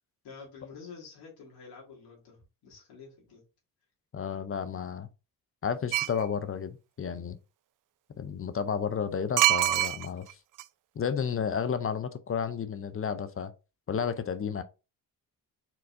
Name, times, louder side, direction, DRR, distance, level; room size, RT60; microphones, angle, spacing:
voice 1, 0.2-3.4, left 5 dB, 75° left, 2.2 m, -48 dB
voice 2, 4.1-5.1 5.6-7.4 8.2-10.3 11.0-13.5 13.9-14.6, left 7 dB, 35° left, 0.6 m, -32 dB
sound 1, 5.9-6.2 9.4-10.3 10.6-10.7, right 15 dB, 55° right, 0.4 m, -24 dB
4.4 x 3.9 x 2.5 m
supercardioid pair, 60°, 40 cm